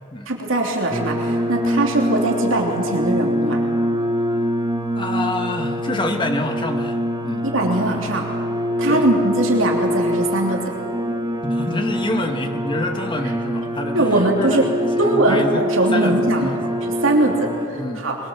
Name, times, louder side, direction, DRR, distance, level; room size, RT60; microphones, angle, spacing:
voice 1, 0.3-3.6 7.4-8.3 8.8-10.6 13.9-14.6 15.0-18.2, right 2 dB, 80° right, 0 dB, 3.0 m, -21 dB
sound 1, 0.9-17.7, equal, 20° right, 1.8 m, -24 dB
voice 2, 5.0-7.0 7.2-7.4 8.9-9.1 11.4-14.7 15.0-15.6 15.9-17.4 17.7-18.0, left 1 dB, 25° left, 4 dB, 1.8 m, -27 dB
23.0 x 22.0 x 7.4 m, 2.6 s
head